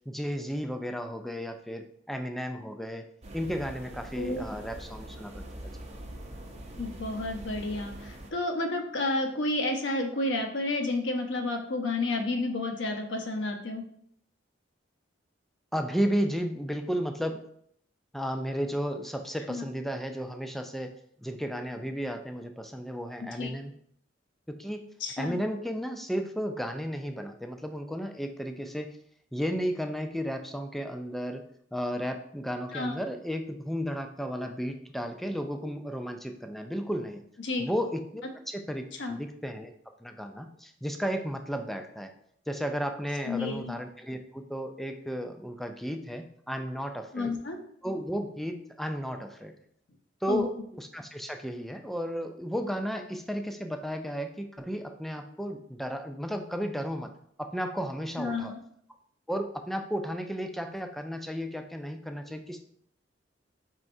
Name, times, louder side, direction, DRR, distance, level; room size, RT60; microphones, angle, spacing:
voice 1, 0.1-3.1 3.3-5.3 15.7-17.4 18.1-20.9 21.2-23.7 24.5-24.8 25.2-28.9 29.3-31.4 31.7-37.2 37.6-39.7 40.0-42.1 42.5-47.3 47.8-49.5 50.2-57.1 57.4-58.5 59.3-62.7, equal, ahead, 5 dB, 0.3 m, -33 dB
sound 1, 3.2-8.3, right 1 dB, 35° right, 0.6 m, -43 dB
voice 2, 6.8-13.8 19.5-19.6 23.2-23.5 25.0-25.4 32.7-33.0 37.4-37.7 39.0-39.2 43.2-43.8 47.1-47.6 50.3-50.4 58.2-58.6, left 2 dB, 75° left, 4 dB, 0.7 m, -31 dB
4.6 x 4.2 x 2.6 m, 0.67 s
head